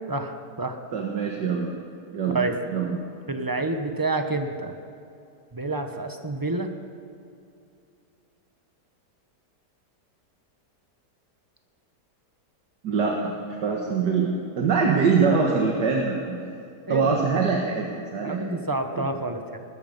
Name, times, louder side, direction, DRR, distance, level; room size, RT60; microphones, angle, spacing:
voice 1, 0.9-1.8 2.1-3.1 12.8-13.3 13.6-16.4 16.9-18.6 18.9-19.1, right 5 dB, 85° right, 0 dB, 2.0 m, -24 dB
voice 2, 3.3-4.8 5.5-6.7 16.9-17.1 18.2-19.6, right 2 dB, 15° right, 6 dB, 0.8 m, -28 dB
19.5 x 13.0 x 5.3 m, 2.6 s
omnidirectional pair, 1.8 m